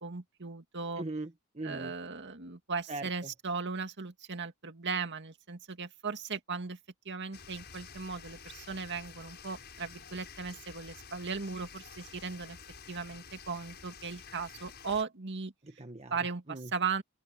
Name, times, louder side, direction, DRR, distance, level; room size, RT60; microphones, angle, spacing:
voice 1, 0.0-1.0 1.6-6.8 7.1-12.6 12.9-15.5 16.1-17.0, right 5 dB, 55° right, 2.2 m, -37 dB
voice 2, 1.0-1.9 2.9-3.3 15.6-16.2 16.5-16.7, right 2 dB, 30° right, 1.4 m, -40 dB
sound 1, 7.3-15.0, left 6 dB, 50° left, 6.8 m, -50 dB
open air
head